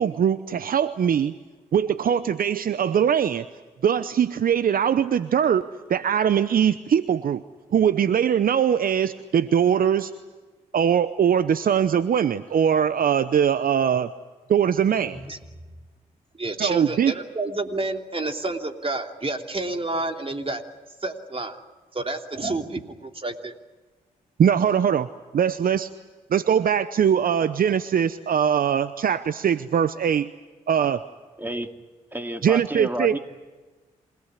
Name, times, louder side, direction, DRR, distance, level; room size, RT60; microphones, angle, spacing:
voice 1, 0.0-1.4 1.7-3.4 3.8-7.4 7.7-10.1 10.7-14.1 14.5-15.2 16.6-17.1 24.4-25.1 25.3-25.9 26.3-30.3 30.7-31.0 32.4-33.2, right 8 dB, 60° right, 14 dB, 0.8 m, -21 dB
voice 2, 15.0-15.4 16.4-20.6 21.0-21.6 21.9-23.5, right 2 dB, 35° right, 4 dB, 3.1 m, -29 dB
voice 3, 31.4-31.7 32.1-33.2, right 1 dB, 10° right, 5 dB, 2.8 m, -30 dB
28.0 x 18.0 x 9.8 m, 1.3 s
supercardioid pair, 45°, 17 cm